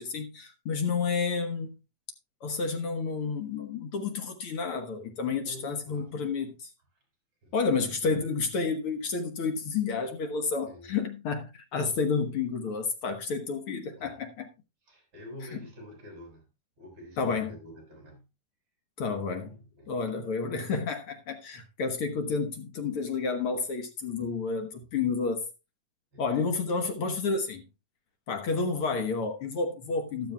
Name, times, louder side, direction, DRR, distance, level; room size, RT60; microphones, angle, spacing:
voice 1, 0.0-1.8 2.4-6.7 7.5-14.5 15.5-15.6 17.2-17.6 19.0-19.6 19.9-25.5 26.2-27.6 28.3-30.3, left 4 dB, 55° left, 1.8 m, -30 dB
voice 2, 5.4-6.1 7.4-7.7 10.7-10.9 11.9-12.0 14.0-14.2 14.8-16.5 16.8-18.3 19.1-20.1 24.2-24.4 24.8-24.9 26.1-26.3, equal, 40° right, 8.0 m, -48 dB
13.5 x 12.0 x 2.3 m
omnidirectional pair, 3.6 m